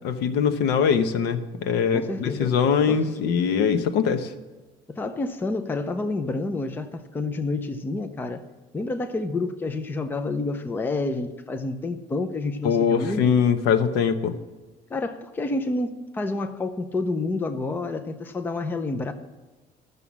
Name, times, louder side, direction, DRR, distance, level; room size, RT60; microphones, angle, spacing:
voice 1, 0.0-4.3 12.6-14.3, left 7 dB, 75° left, 10 dB, 0.9 m, -22 dB
voice 2, 1.9-2.6 2.9-3.1 4.9-8.4 8.7-13.3 14.9-19.1, left 2 dB, 10° left, 9 dB, 0.5 m, -29 dB
13.0 x 6.7 x 7.2 m, 1.3 s
cardioid pair, 170°, 17 cm